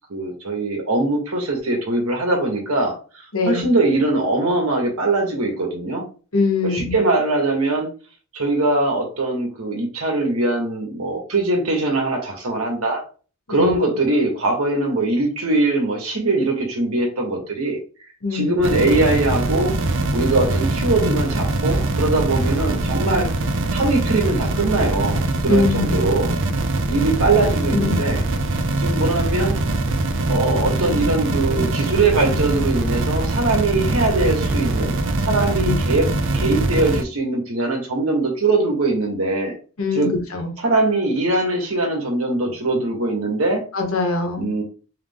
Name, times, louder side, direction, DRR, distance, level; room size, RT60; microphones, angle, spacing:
voice 1, 0.1-6.0 6.6-7.9 8.3-13.0 13.5-17.8 18.3-19.7 20.1-23.3 23.7-26.3 26.9-28.2 28.8-29.6 30.3-36.1 36.3-39.5 39.9-40.1 40.6-43.6 44.4-44.6, right 2 dB, 80° right, 1.4 m, -21 dB
voice 2, 3.3-3.6 6.3-7.0 13.5-13.7 18.2-18.5 25.5-26.0 27.7-28.0 35.6-35.8 39.8-40.5 43.7-44.5, left 3 dB, 70° left, 1.2 m, -22 dB
sound 1, 18.6-37.0, right 2 dB, 60° right, 0.5 m, -22 dB
3.5 x 3.3 x 3.5 m
head